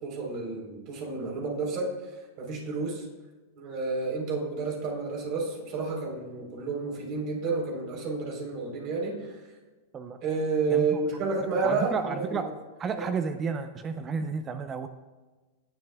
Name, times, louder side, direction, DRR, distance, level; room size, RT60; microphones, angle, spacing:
voice 1, 0.0-3.1 3.6-9.4 10.2-12.4, right 4 dB, 45° right, 0 dB, 3.9 m, -30 dB
voice 2, 10.7-11.0 11.6-12.5 12.8-14.9, right 5 dB, 25° right, 9 dB, 0.6 m, -32 dB
17.5 x 11.0 x 2.3 m, 1.2 s
hypercardioid pair, 105°, 0 cm